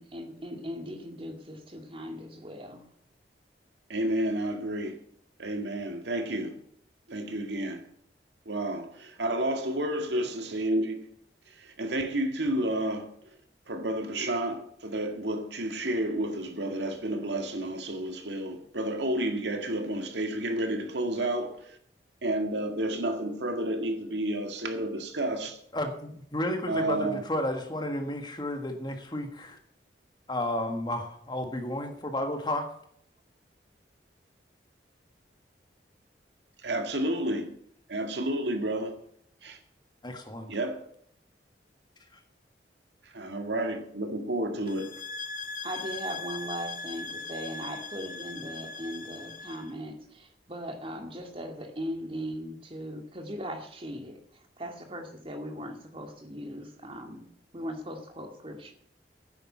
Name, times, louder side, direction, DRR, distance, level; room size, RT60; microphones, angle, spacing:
voice 1, 0.0-2.8 45.6-57.2 57.5-58.7, equal, 30° right, 2.1 m, -39 dB
voice 2, 3.9-5.0 5.4-6.6 7.1-7.9 8.5-11.1 11.6-13.1 13.7-21.8 22.2-25.6 26.7-27.2 36.6-37.5 37.9-39.0 39.4-39.6 40.5-40.9 43.1-45.0, right 1 dB, 80° right, 1.9 m, -31 dB
voice 3, 25.7-29.6 30.3-32.7 40.0-40.5, left 1 dB, 25° left, 1.6 m, -32 dB
sound 1, 44.7-49.7, left 4 dB, 45° left, 0.9 m, -39 dB
10.0 x 8.9 x 7.4 m
head